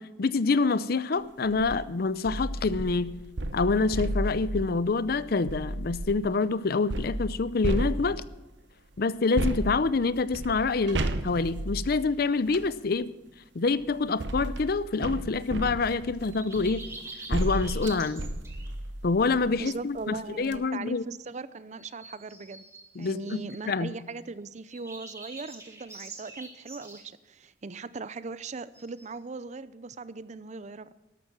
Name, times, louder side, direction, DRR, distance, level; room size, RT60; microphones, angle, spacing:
voice 1, 0.0-3.2 3.5-8.2 9.0-13.2 13.5-16.9 17.3-18.2 19.0-21.0 23.0-23.9, left 4 dB, 60° left, 0.6 m, -26 dB
sound 1, 1.4-1.8 2.2-6.3 6.9-8.4 9.3-12.7 13.7-19.6 20.0-20.1 20.4-20.6, right 1 dB, 80° right, 0.9 m, -33 dB
sound 2, 16.3-18.7 21.8-23.7 24.7-27.0 28.7-29.1, right 2 dB, 15° right, 2.4 m, -45 dB
voice 2, 19.6-22.6 23.0-30.9, right 4 dB, 40° right, 0.5 m, -39 dB
13.0 x 11.5 x 6.0 m
head